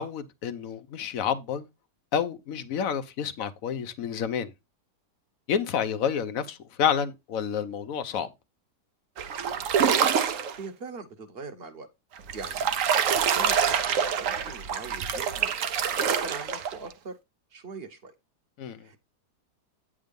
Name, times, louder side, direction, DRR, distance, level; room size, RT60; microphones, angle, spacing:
voice 1, 0.0-1.6 2.1-4.5 5.5-8.3 18.6-18.8, left 8 dB, 60° left, 1.1 m, -29 dB
sound 1, 9.2-10.6 12.2-16.9, right 7 dB, 60° right, 1.0 m, -26 dB
voice 2, 10.6-11.9 12.3-12.6 13.1-13.8 14.2-17.2 17.5-18.1 18.8-19.0, right 4 dB, 40° right, 1.2 m, -41 dB
9.2 x 3.7 x 5.2 m
omnidirectional pair, 1.8 m